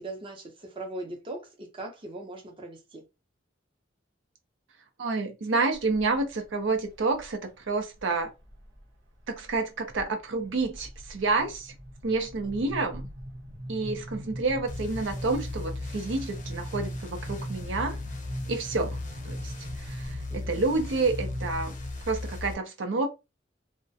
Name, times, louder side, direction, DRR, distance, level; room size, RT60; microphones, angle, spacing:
voice 1, 0.0-3.0 12.4-12.5 20.3-20.6, right 2 dB, 30° right, 0.6 m, -40 dB
voice 2, 5.0-7.4 7.7-8.3 9.3-11.7 12.0-13.1 13.7-18.0 18.5-19.0 19.2-19.5 19.8-21.7 22.1-23.1, right 3 dB, 70° right, 0.5 m, -29 dB
sound 1, 5.7-6.3 6.8-7.3 8.0-8.8 9.2-9.6 9.9-22.5, equal, 85° right, 0.9 m, -40 dB
sound 2, 14.7-22.5, left 3 dB, 40° left, 0.5 m, -38 dB
2.3 x 2.1 x 2.6 m
head